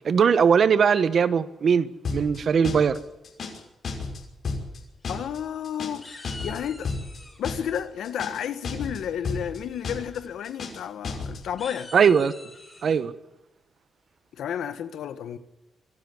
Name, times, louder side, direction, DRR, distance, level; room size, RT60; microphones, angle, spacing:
voice 1, 0.0-3.0 11.9-12.3 12.8-13.1, right 6 dB, 50° right, 1.2 m, -20 dB
sound 1, 2.0-2.4 2.6-3.0 3.2-3.6 3.8-4.2 4.4-4.8 5.0-5.4 5.6-6.0 6.2-6.6 6.8-7.2 7.4-7.8 8.0-8.4 8.6-9.0 9.2-9.6 9.8-10.2 10.4-10.8 11.0-11.4, left 4 dB, 50° left, 5.8 m, -32 dB
sound 2, 5.0-5.6 6.0-7.4 8.8-9.2 9.6-9.9 10.2-10.3 10.7-10.8 11.4-13.0, left 2 dB, 15° left, 6.6 m, -45 dB
voice 2, 5.1-6.9 7.4-11.9 14.3-15.4, left 9 dB, 80° left, 1.5 m, -32 dB
25.0 x 12.5 x 9.8 m
cardioid pair, 125°, 0 cm